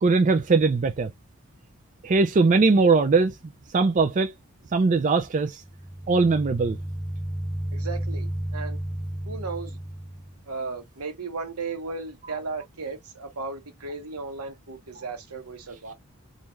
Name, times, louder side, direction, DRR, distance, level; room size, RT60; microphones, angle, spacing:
voice 1, 0.0-1.1 2.0-3.4 3.7-4.3 4.7-5.6 6.1-6.8, right 4 dB, 35° right, 0.4 m, -20 dB
sound 1, 5.6-10.4, right 1 dB, 20° right, 1.2 m, -32 dB
voice 2, 7.7-8.8 9.3-9.8 10.5-15.9, right 4 dB, 80° right, 1.2 m, -35 dB
3.5 x 2.7 x 3.1 m
head